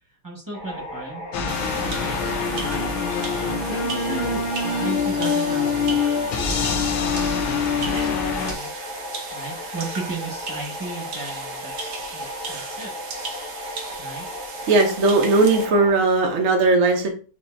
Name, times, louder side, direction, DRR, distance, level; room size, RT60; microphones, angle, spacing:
voice 1, 0.2-8.7 9.3-12.9 14.0-14.2, right 3 dB, 15° right, -3 dB, 0.9 m, -36 dB
sound 1, 0.5-15.9, left 1 dB, 45° left, 0.7 m, -35 dB
sound 2, 1.3-8.5, left 5 dB, 75° left, 1.4 m, -24 dB
sound 3, 1.5-15.7, right 4 dB, 90° right, 0.6 m, -36 dB
voice 2, 14.7-17.1, right 3 dB, 55° right, 1 dB, 0.9 m, -18 dB
5.3 x 3.1 x 2.6 m, 0.38 s
omnidirectional pair, 2.4 m